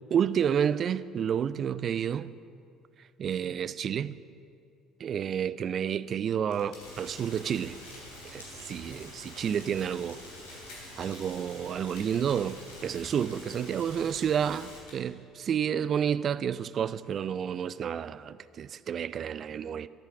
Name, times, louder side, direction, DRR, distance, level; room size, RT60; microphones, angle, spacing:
voice 1, 0.1-2.3 3.2-4.1 5.0-7.8 8.3-10.2 11.0-19.9, right 8 dB, 45° right, 0.4 m, -30 dB
sound 1, 6.5-6.9 7.8-8.1 9.1-9.3 10.3-10.9 11.9-12.1 12.6-13.1 14.1-14.2 14.9-15.0 16.4-16.5 16.6-17.9, left 2 dB, 60° left, 3.5 m, -53 dB
Rain, 6.8-14.8, left 1 dB, 80° left, 2.6 m, -46 dB
10.5 x 8.3 x 7.5 m
figure-of-eight pair, 55°, 0 cm